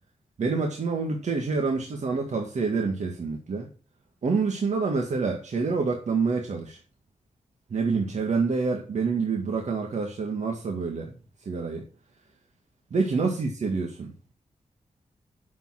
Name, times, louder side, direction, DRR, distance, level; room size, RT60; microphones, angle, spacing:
voice 1, 0.4-3.7 4.2-6.8 7.7-11.1 11.4-11.9 12.9-14.3, right 4 dB, 65° right, 1 dB, 1.9 m, -27 dB
10.0 x 7.1 x 6.0 m, 0.37 s
wide cardioid pair, 135°, 13 cm